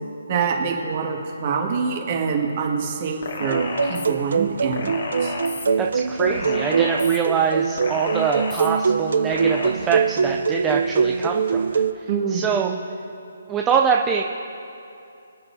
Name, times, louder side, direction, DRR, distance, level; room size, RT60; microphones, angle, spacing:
voice 1, 0.3-5.3 12.1-12.7, right 5 dB, 30° right, 0 dB, 1.7 m, -26 dB
sound 1, 3.2-4.1 4.7-5.7 6.3-7.2 7.8-8.7 9.3-9.7, left 4 dB, 55° left, 1.9 m, -31 dB
sound 2, 3.4-11.9, right 5 dB, 65° right, 0.6 m, -23 dB
voice 2, 5.8-11.8 12.3-12.7 13.5-14.2, right 7 dB, 10° right, 1 dB, 0.4 m, -24 dB
25.5 x 9.6 x 2.7 m, 2.7 s
hypercardioid pair, 170°, 0 cm